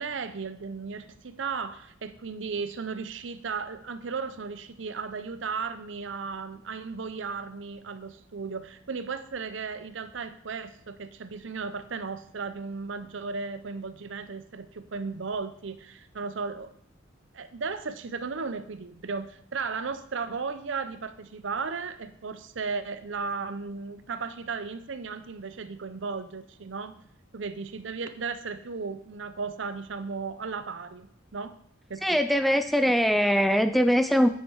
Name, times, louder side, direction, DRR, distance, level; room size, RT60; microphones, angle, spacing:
voice 1, 0.0-16.7 17.3-26.9 27.3-31.6 31.9-32.2 32.8-32.9, right 5 dB, 70° right, 12 dB, 0.6 m, -35 dB
voice 2, 32.0-34.3, equal, ahead, 10 dB, 0.3 m, -22 dB
8.7 x 8.1 x 4.7 m, 0.67 s
head